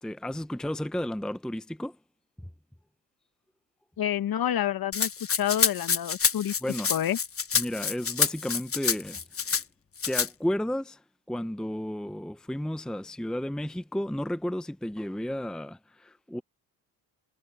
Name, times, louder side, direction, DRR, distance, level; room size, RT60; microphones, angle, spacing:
voice 1, 0.0-2.0 6.6-6.9 7.5-9.6 10.1-11.0 11.3-16.4, left 1 dB, ahead, 0.9 m, -33 dB
voice 2, 4.0-6.5 6.9-7.2, left 11 dB, 60° left, 1.5 m, -28 dB
Rattle (instrument), 4.9-9.6 10.0-10.3, left 6 dB, 35° left, 1.3 m, -27 dB
supercardioid pair, 70°, 40 cm